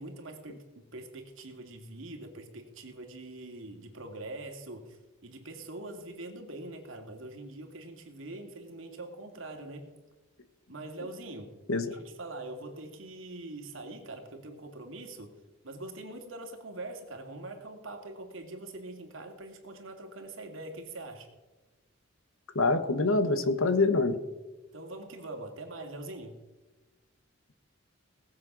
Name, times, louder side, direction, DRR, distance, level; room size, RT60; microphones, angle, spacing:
voice 1, 0.0-9.9 10.7-11.6 11.9-15.3 15.6-21.3 24.7-26.4, right 2 dB, 65° right, 3 dB, 2.5 m, -43 dB
voice 2, 22.5-24.2, left 3 dB, 75° left, 10 dB, 1.3 m, -25 dB
19.0 x 7.7 x 6.1 m, 1.2 s
head